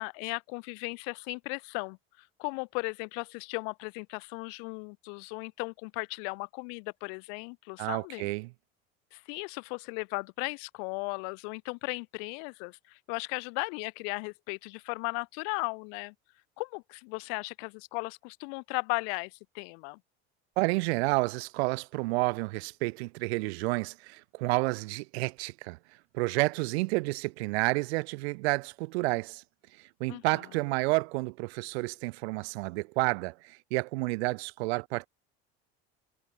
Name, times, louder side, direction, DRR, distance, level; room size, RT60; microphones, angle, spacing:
voice 1, 0.0-8.3 9.1-16.1 16.6-20.0 30.1-30.2, left 40 dB or more, 70° left, 1.3 m, -36 dB
voice 2, 7.8-8.5 20.6-25.8 26.1-29.4 30.0-35.1, right 25 dB, 80° right, 1.8 m, -30 dB
supercardioid pair, 95°, 32 cm